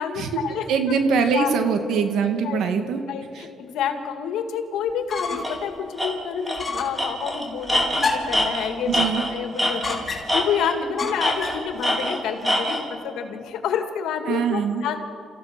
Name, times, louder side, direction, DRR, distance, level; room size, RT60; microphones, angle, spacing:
voice 1, 0.0-0.6 1.3-1.5 2.4-2.6 3.1-9.1 9.3-15.0, left 7 dB, 85° left, 6 dB, 2.0 m, -28 dB
voice 2, 0.7-3.0 3.3-3.5 8.9-9.2 14.3-14.8, right 6 dB, 80° right, 6 dB, 2.1 m, -22 dB
sound 1, 4.9-5.6 6.0-6.1 6.6-7.0 8.0-8.4 9.8-10.5 11.0-11.7, left 3 dB, 30° left, 3.7 m, -29 dB
Tools, 5.4-5.6 6.0-6.1 6.5-6.7 7.0-10.0 10.3-10.8 11.2-12.8, left 1 dB, 5° right, 4.0 m, -24 dB
29.0 x 15.0 x 6.1 m, 2.5 s
cardioid pair, 90°, 0 cm